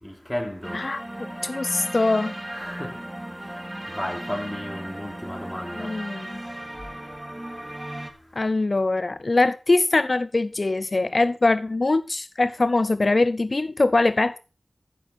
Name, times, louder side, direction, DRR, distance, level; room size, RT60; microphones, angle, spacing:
voice 1, 0.0-0.9 2.5-6.0 6.7-8.5, left 1 dB, 10° left, 3.1 m, -36 dB
sound 1, 0.6-8.1, right 1 dB, 15° right, 2.2 m, -36 dB
voice 2, 1.4-2.3 5.8-6.3 8.4-14.4, left 2 dB, 55° left, 0.4 m, -22 dB
15.0 x 7.4 x 4.1 m
wide cardioid pair, 50°, 0 cm